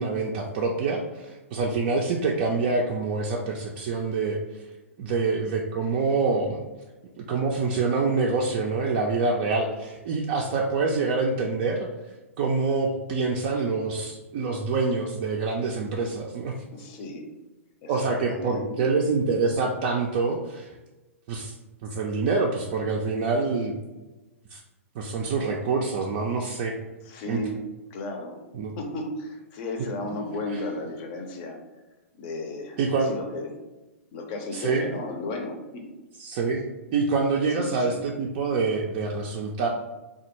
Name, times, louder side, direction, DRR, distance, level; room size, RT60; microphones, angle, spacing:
voice 1, 0.0-4.4 5.0-6.6 7.2-11.9 12.4-16.5 17.9-20.7 21.3-21.5 21.8-23.7 24.5-24.6 25.0-26.7 27.3-27.4 28.5-28.8 30.5-30.6 32.8-33.1 34.5-34.9 36.2-39.7, right 4 dB, 40° right, -1 dB, 0.4 m, -26 dB
voice 2, 16.7-17.3 17.8-18.8 27.1-27.6 27.9-28.4 28.8-31.6 32.2-32.8 33.0-33.6 34.1-35.9 37.5-38.0, left 2 dB, 40° left, 3 dB, 0.6 m, -34 dB
3.3 x 2.3 x 2.9 m, 1.1 s
figure-of-eight pair, 110°, 7 cm